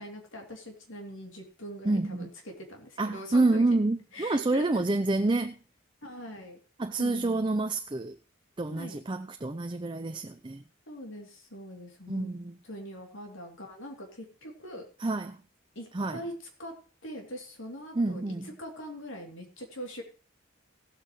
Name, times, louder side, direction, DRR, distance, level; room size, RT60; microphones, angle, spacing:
voice 1, 0.0-3.8 4.1-4.9 6.0-6.6 7.0-7.5 8.7-9.0 10.9-12.3 12.6-14.8 15.7-16.3 16.6-16.7 17.0-20.0, equal, 65° left, 2.9 m, -42 dB
voice 2, 1.8-2.3 3.0-5.5 6.8-8.2 8.6-10.6 12.1-12.6 15.0-15.4 15.9-16.2 18.0-18.5, right 2 dB, 25° right, 0.5 m, -28 dB
17.5 x 8.6 x 3.1 m
head